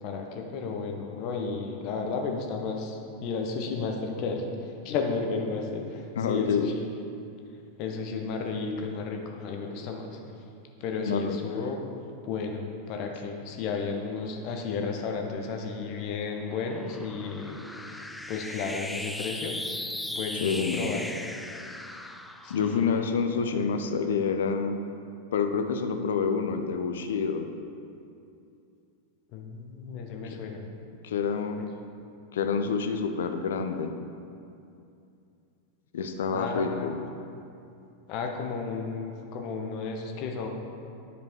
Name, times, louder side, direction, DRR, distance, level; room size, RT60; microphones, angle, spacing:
voice 1, 0.0-6.7 7.8-10.2 10.8-11.8 12.2-19.6 20.1-21.0 22.4-23.0 29.3-30.6 31.6-31.7 36.3-36.9 38.1-40.5, left 4 dB, 40° left, 3 dB, 1.0 m, -33 dB
voice 2, 6.2-6.7 11.1-11.4 20.4-20.9 22.5-24.8 25.3-27.5 31.0-31.6 32.3-33.9 35.9-37.0, left 5 dB, 60° left, 7 dB, 0.6 m, -27 dB
sound 1, 15.6-24.2, left 1 dB, 5° left, 0.4 m, -39 dB
9.8 x 5.1 x 4.6 m, 2.6 s
figure-of-eight pair, 90°, 0 cm